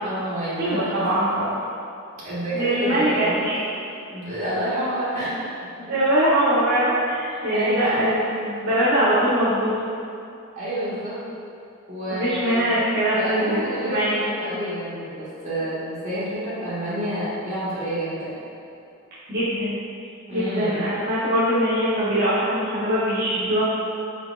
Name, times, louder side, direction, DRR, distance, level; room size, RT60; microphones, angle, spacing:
voice 1, 0.0-1.1 2.2-3.4 4.1-5.4 5.8-5.9 7.3-8.1 10.5-11.2 11.9-12.7 13.1-18.3 20.3-20.8, equal, 35° right, -11 dB, 1.4 m, -29 dB
voice 2, 0.6-1.6 2.5-3.5 5.9-9.7 12.1-14.2 19.3-19.8 20.3-23.6, right 1 dB, 50° right, -13 dB, 1.1 m, -22 dB
4.4 x 4.1 x 2.4 m, 2.5 s
head